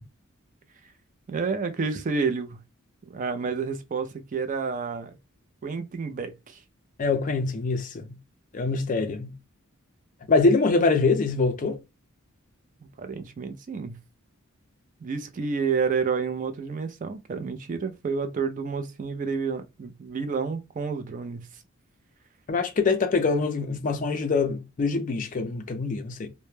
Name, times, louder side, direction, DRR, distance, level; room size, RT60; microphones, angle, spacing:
voice 1, 1.3-2.6 3.0-5.1 5.6-6.6 13.0-14.0 15.0-21.5, right 5 dB, 35° right, 0.3 m, -29 dB
voice 2, 7.0-8.2 8.5-9.3 10.3-11.8 22.5-26.3, left 3 dB, 40° left, 0.4 m, -24 dB
2.1 x 2.0 x 3.0 m
head